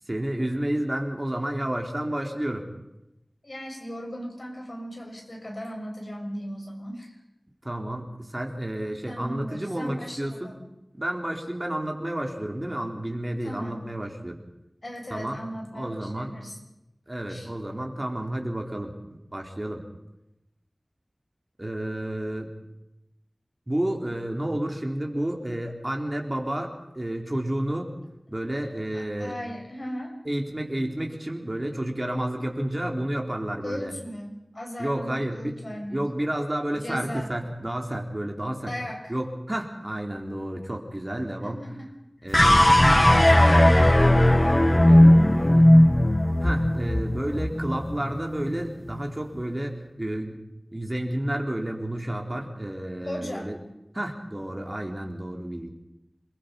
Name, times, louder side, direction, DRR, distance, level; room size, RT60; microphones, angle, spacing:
voice 1, 0.1-2.7 7.6-10.6 10.9-14.4 15.1-15.4 15.7-16.3 17.1-19.8 21.6-22.5 23.7-27.9 28.3-29.4 30.3-33.9 34.8-35.6 35.9-38.7 39.1-41.6 42.2-43.9 44.8-45.7 46.4-50.4 50.7-53.6 53.9-55.7, right 1 dB, 30° right, 2 dB, 4.0 m, -31 dB
voice 2, 3.4-7.1 9.1-10.5 13.4-13.8 14.8-16.6 17.3-17.5 28.9-30.2 33.6-36.0 36.7-37.3 38.7-39.1 41.4-41.9 53.0-53.5, equal, 60° left, 1 dB, 6.6 m, -37 dB
sound 1, 42.3-48.7, left 1 dB, 25° left, 1.0 m, -17 dB
28.0 x 21.5 x 5.5 m, 0.89 s
wide cardioid pair, 45°, 0 cm